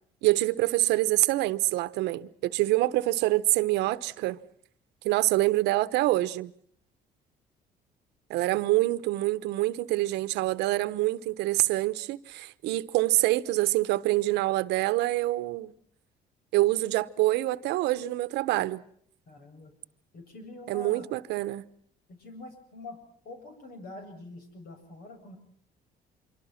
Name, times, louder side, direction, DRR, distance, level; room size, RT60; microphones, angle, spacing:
voice 1, 0.2-4.4 5.0-6.5 8.3-15.7 16.5-18.8 20.7-21.6, right 17 dB, 85° right, 1.1 m, -26 dB
voice 2, 19.3-19.7 20.1-21.0 22.1-23.0 23.2-25.4, left 2 dB, 60° left, 7.7 m, -45 dB
26.0 x 24.0 x 5.8 m
cardioid pair, 110°, 17 cm